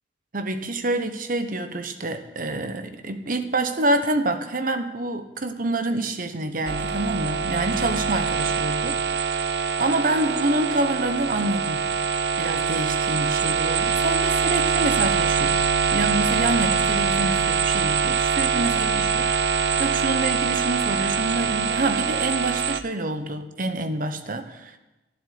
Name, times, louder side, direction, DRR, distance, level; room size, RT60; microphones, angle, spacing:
voice 1, 0.3-9.4 9.8-11.8 12.4-15.6 15.9-24.8, right 2 dB, 50° right, 8 dB, 1.1 m, -27 dB
sound 1, 6.7-22.8, right 6 dB, 65° right, 0.6 m, -24 dB
11.5 x 7.9 x 9.9 m, 1.0 s
head